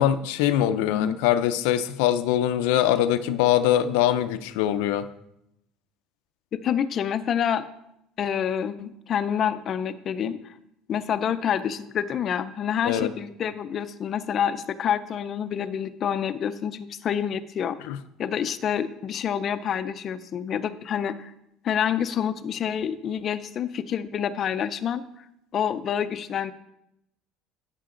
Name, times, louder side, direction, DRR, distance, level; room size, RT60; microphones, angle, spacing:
voice 1, 0.0-5.1 12.8-13.1 17.8-18.0, left 11 dB, 90° left, 11 dB, 0.5 m, -23 dB
voice 2, 6.5-7.6 8.2-10.4 10.9-17.9 18.2-21.3 21.6-25.0 25.5-26.5, left 8 dB, 35° left, 10 dB, 0.5 m, -27 dB
11.5 x 8.3 x 3.8 m, 0.81 s
cardioid pair, 150°, 0 cm